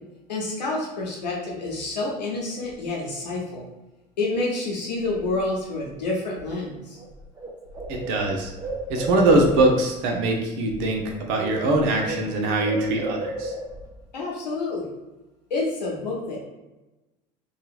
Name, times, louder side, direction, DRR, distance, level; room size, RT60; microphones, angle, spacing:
voice 1, 0.3-3.6 4.2-7.0 14.1-14.9 15.5-16.4, left 2 dB, 90° left, -3 dB, 0.8 m, -28 dB
Bird, 7.0-7.1 7.4-9.9 10.9-11.2 11.4-13.9, right 2 dB, 15° right, 0.6 m, -33 dB
voice 2, 7.9-8.5 8.9-13.5, right 2 dB, 65° right, 2 dB, 0.7 m, -22 dB
2.8 x 2.4 x 2.4 m, 1.1 s
hypercardioid pair, 75°, 21 cm